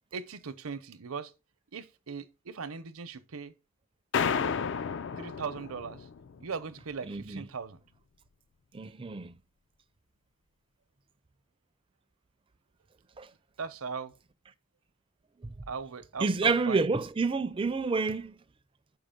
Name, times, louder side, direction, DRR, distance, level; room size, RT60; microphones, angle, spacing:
voice 1, 0.1-1.3 1.7-3.5 5.2-6.1 6.4-7.8 13.6-14.1 15.7-16.8, right 5 dB, 80° right, 0.7 m, -39 dB
sound 1, 4.1-6.5, left 6 dB, 55° left, 0.4 m, -32 dB
voice 2, 7.1-7.5 8.7-9.3 13.2-13.3 15.4-15.5 16.2-18.3, right 4 dB, 25° right, 0.4 m, -29 dB
6.4 x 4.9 x 5.1 m
head